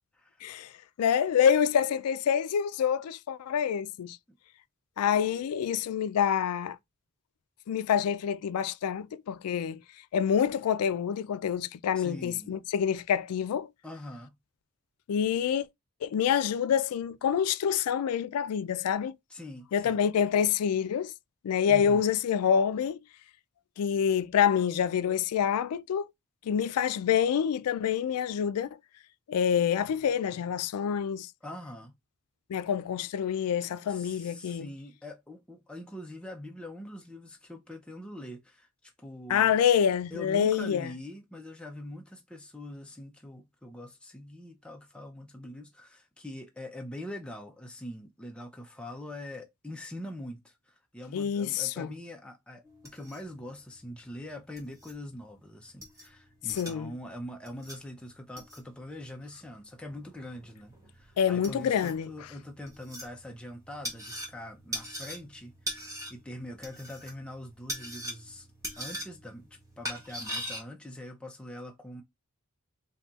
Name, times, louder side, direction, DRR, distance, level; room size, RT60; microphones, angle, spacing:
voice 1, 1.0-4.2 5.0-6.8 7.7-9.8 10.1-13.7 15.1-15.7 16.0-19.2 19.7-21.1 21.4-23.0 23.8-26.1 26.5-28.7 29.3-31.3 32.5-34.7 39.3-40.9 51.1-51.9 56.6-56.9 61.2-62.1, left 8 dB, 90° left, 0.3 m, -27 dB
voice 2, 12.0-12.6 13.8-14.3 19.3-20.0 21.7-22.0 31.4-31.9 33.9-39.6 40.1-68.5 68.8-72.0, left 1 dB, 5° left, 0.5 m, -43 dB
sound 1, 52.6-70.6, equal, 15° right, 0.9 m, -42 dB
4.0 x 2.8 x 2.3 m
head